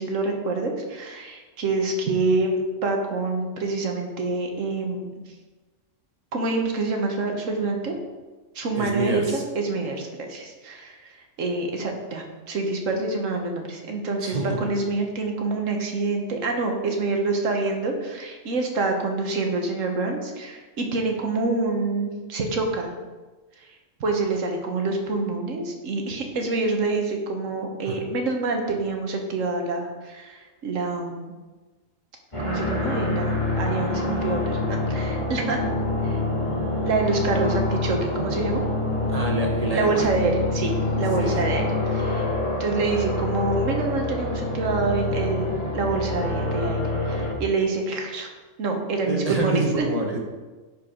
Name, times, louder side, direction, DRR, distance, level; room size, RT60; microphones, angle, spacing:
voice 1, 0.0-5.1 6.3-7.9 8.5-11.0 11.4-22.9 24.0-31.3 32.4-35.6 36.0-36.2 36.8-38.6 39.7-41.6 41.9-42.3 42.6-46.8 47.1-48.3 48.6-49.9, right 3 dB, 85° right, 3 dB, 1.5 m, -26 dB
voice 2, 8.8-9.4 14.2-14.7 27.9-28.0 39.1-40.1 41.2-41.5 49.0-50.2, right 2 dB, 35° right, 0 dB, 1.1 m, -27 dB
sound 1, 32.3-47.3, left 2 dB, 25° left, 1.6 m, -26 dB
11.0 x 4.7 x 3.7 m, 1.3 s
omnidirectional pair, 1.3 m